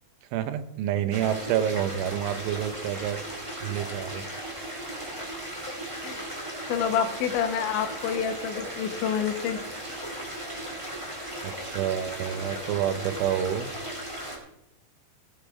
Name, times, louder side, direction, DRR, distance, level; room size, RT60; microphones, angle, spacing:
voice 1, 0.3-3.2 3.6-4.3 11.4-13.7, right 10 dB, 90° right, 11 dB, 3.3 m, -28 dB
sound 1, 1.1-14.4, right 1 dB, 15° right, 1.3 m, -37 dB
voice 2, 6.7-9.6, left 8 dB, 80° left, 7 dB, 3.4 m, -28 dB
18.5 x 6.7 x 4.9 m, 0.81 s
omnidirectional pair, 5.3 m